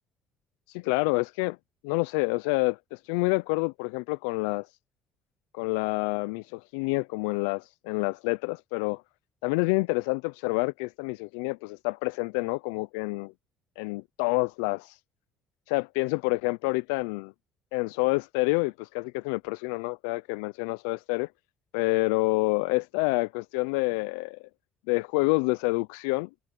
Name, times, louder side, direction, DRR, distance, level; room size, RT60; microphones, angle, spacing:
voice 1, 0.7-1.6 1.8-4.7 5.5-9.0 9.4-13.3 13.8-15.0 15.7-17.3 17.7-21.3 21.7-24.4 24.9-26.3, left 27 dB, 85° left, 0.3 m, -28 dB
supercardioid pair, 75°, 0 cm